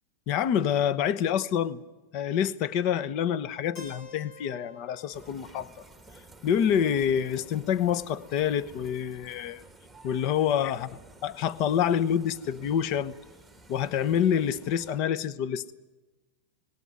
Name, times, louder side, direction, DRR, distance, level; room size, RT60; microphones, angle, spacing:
voice 1, 0.3-1.8 2.1-5.7 6.4-9.6 10.0-10.9 11.2-13.1 13.7-15.7, left 9 dB, 45° left, 17 dB, 0.9 m, -27 dB
Keyboard (musical), 3.8-7.6, left 2 dB, 60° left, 5.0 m, -51 dB
sound 1, 5.1-15.0, right 1 dB, ahead, 1.6 m, -52 dB
20.0 x 17.5 x 9.6 m, 1.1 s
supercardioid pair, 145°, 0 cm